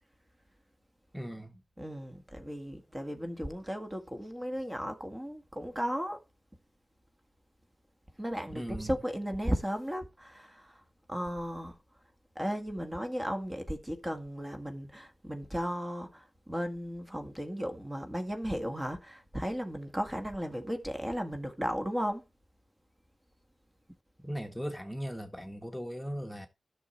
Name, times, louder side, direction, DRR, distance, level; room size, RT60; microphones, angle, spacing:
voice 1, 1.1-1.6 8.5-8.9 24.2-26.5, equal, ahead, 1.6 m, -38 dB
voice 2, 1.8-6.2 8.2-10.8 11.1-11.8 12.4-22.2, equal, 20° right, 1.8 m, -35 dB
11.0 x 6.5 x 4.3 m
cardioid pair, 40°, 0 cm